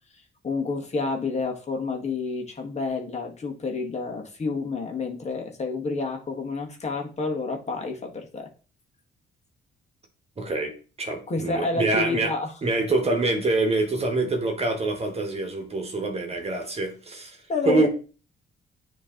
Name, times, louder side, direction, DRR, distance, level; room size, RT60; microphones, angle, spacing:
voice 1, 0.4-8.5 11.3-12.5 17.5-17.9, left 3 dB, 35° left, 1.6 m, -29 dB
voice 2, 10.4-12.3 12.6-17.9, right 2 dB, 30° right, 1.6 m, -25 dB
9.6 x 3.2 x 3.8 m
cardioid pair, 90°, 20 cm